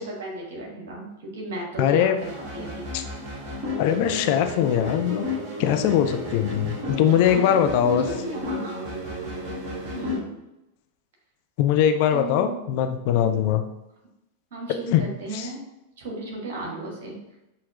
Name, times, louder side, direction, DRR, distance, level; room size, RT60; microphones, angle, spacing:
voice 1, 0.0-2.8 7.1-7.5 7.8-8.9 9.9-10.3 12.1-12.6 14.5-15.6 16.0-17.2, right 2 dB, 55° right, -2 dB, 1.4 m, -34 dB
voice 2, 1.8-2.2 2.9-3.0 3.8-5.3 5.6-8.0 11.6-13.6 14.9-15.0 15.3-15.5, left 10 dB, 45° left, 7 dB, 0.3 m, -21 dB
sound 1, 2.2-10.2, left 1 dB, 40° right, 1.3 m, -33 dB
6.3 x 2.8 x 2.5 m, 0.91 s
figure-of-eight pair, 90°, 0 cm